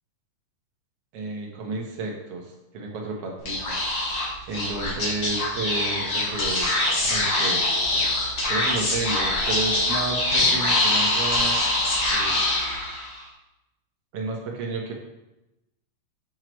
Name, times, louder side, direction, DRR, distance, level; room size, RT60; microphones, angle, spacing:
voice 1, 1.1-2.5 2.7-6.7 7.0-7.7 8.5-11.9 12.1-12.4 14.1-14.9, right 3 dB, 60° right, 0 dB, 1.9 m, -32 dB
Speech / Whispering, 3.4-13.2, left 2 dB, 45° left, 2.3 m, -24 dB
7.6 x 6.4 x 3.1 m, 0.94 s
omnidirectional pair, 3.4 m